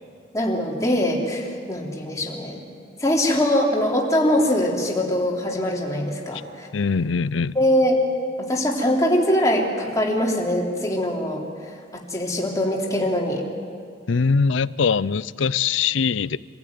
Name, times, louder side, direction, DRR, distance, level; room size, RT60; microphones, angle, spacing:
voice 1, 0.3-2.6 3.0-6.7 7.5-8.0 8.4-11.4 11.9-13.4, left 1 dB, 15° left, -2 dB, 3.2 m, -22 dB
voice 2, 6.7-7.6 14.1-16.4, left 5 dB, 80° left, 18 dB, 0.5 m, -22 dB
26.0 x 15.5 x 9.5 m, 2.2 s
head